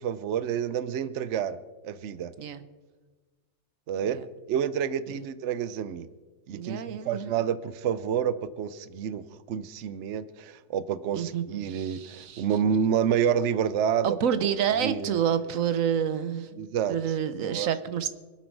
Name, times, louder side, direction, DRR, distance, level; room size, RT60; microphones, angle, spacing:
voice 1, 0.0-1.6 1.8-2.3 3.9-4.2 4.5-6.1 6.5-14.2 14.4-14.5 14.8-15.2 16.6-17.0 17.3-17.7, right 8 dB, 65° right, 14 dB, 1.0 m, -28 dB
voice 2, 6.5-7.3 11.1-12.5 14.0-16.6 16.9-18.1, right 8 dB, 90° right, 12 dB, 1.3 m, -29 dB
26.0 x 8.8 x 4.7 m, 1.3 s
omnidirectional pair, 1.3 m